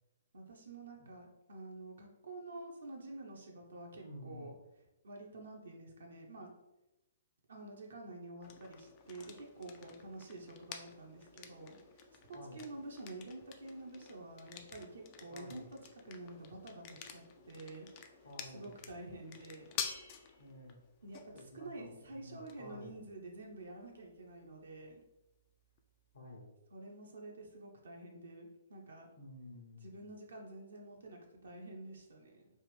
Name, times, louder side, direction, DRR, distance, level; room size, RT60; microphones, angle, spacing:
voice 1, 0.3-4.5 5.0-6.5 7.5-11.8 12.3-15.7 16.0-17.9 18.5-19.7 21.0-25.0 26.7-29.1 29.8-32.5, right 2 dB, 70° right, 0 dB, 0.7 m, -49 dB
voice 2, 4.0-4.5 12.3-12.6 15.3-15.7 18.2-18.8 20.4-20.8 21.3-23.0 26.1-26.5 29.2-30.0, left 1 dB, 65° left, 0 dB, 0.9 m, -51 dB
sound 1, 8.4-26.2, left 7 dB, 35° left, 0.4 m, -50 dB
3.3 x 2.5 x 3.3 m, 0.97 s
figure-of-eight pair, 125°, 0 cm